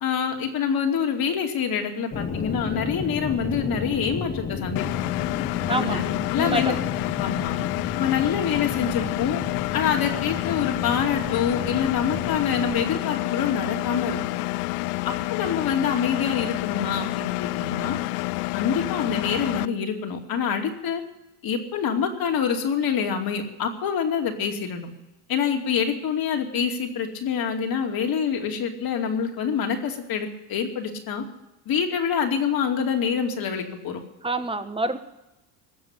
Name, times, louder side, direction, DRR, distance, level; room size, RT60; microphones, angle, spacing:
voice 1, 0.0-4.9 5.7-6.8 7.2-7.6 8.0-9.4 9.7-14.2 15.0-18.0 18.5-21.0 21.4-24.9 25.3-31.2 31.7-34.0, left 7 dB, 55° left, 3 dB, 2.7 m, -26 dB
sound 1, 2.1-13.0, left 5 dB, 25° left, 1.5 m, -33 dB
Engine, 4.8-19.7, left 22 dB, 85° left, 0.5 m, -28 dB
voice 2, 5.7-6.0 6.3-6.8 34.2-35.0, right 2 dB, 10° right, 10 dB, 1.3 m, -27 dB
19.5 x 7.2 x 9.9 m, 0.96 s
supercardioid pair, 80°, 44 cm